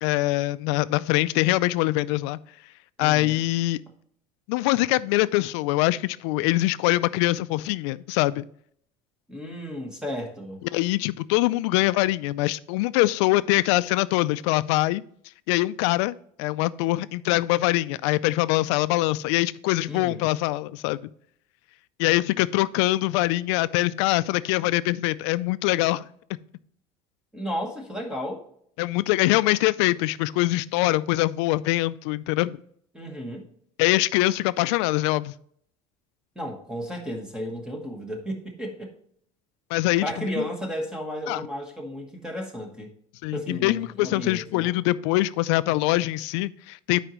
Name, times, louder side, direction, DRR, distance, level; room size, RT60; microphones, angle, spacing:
voice 1, 0.0-2.4 3.0-3.8 4.5-8.5 10.7-15.0 15.5-16.1 16.4-21.1 22.0-26.1 28.8-32.6 33.8-35.3 39.7-40.4 41.3-41.5 43.2-47.0, left 18 dB, 80° left, 16 dB, 0.4 m, -23 dB
voice 2, 3.0-3.4 9.3-10.6 19.9-20.3 27.3-28.4 32.9-33.5 36.3-38.9 40.0-42.9 43.3-44.7, equal, 5° right, 2 dB, 1.2 m, -33 dB
11.5 x 5.0 x 3.0 m, 0.66 s
cardioid pair, 170°, 15 cm